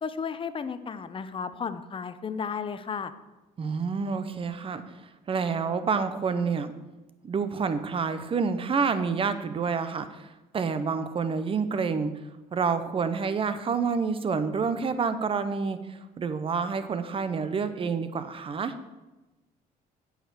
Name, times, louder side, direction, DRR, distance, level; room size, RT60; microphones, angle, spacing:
voice 1, 0.0-3.1, left 6 dB, 30° left, 12 dB, 0.7 m, -33 dB
voice 2, 3.6-6.7 7.2-12.1 12.5-18.7, right 5 dB, 35° right, 11 dB, 0.8 m, -28 dB
8.7 x 4.9 x 7.4 m, 1.1 s
cardioid pair, 110°, 17 cm